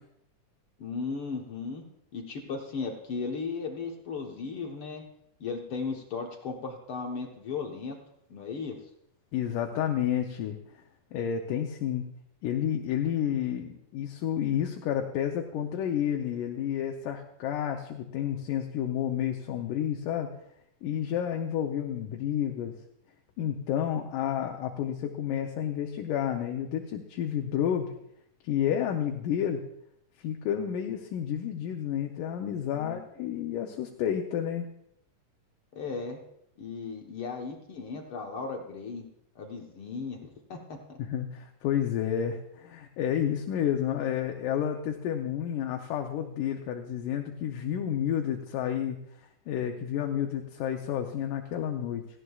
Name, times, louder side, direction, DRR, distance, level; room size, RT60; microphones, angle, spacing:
voice 1, 0.8-1.8 2.1-5.0 5.4-8.0 8.3-8.8 32.7-33.0 35.7-36.2 36.6-39.0 39.3-41.0, left 4 dB, 65° left, 2 dB, 1.4 m, -36 dB
voice 2, 9.3-10.6 11.1-12.0 12.4-20.3 20.8-22.7 23.4-27.9 28.4-29.6 30.2-34.7 41.0-49.0 49.5-52.0, left 9 dB, 80° left, 3 dB, 2.3 m, -30 dB
17.5 x 15.0 x 2.3 m, 0.76 s
omnidirectional pair, 3.7 m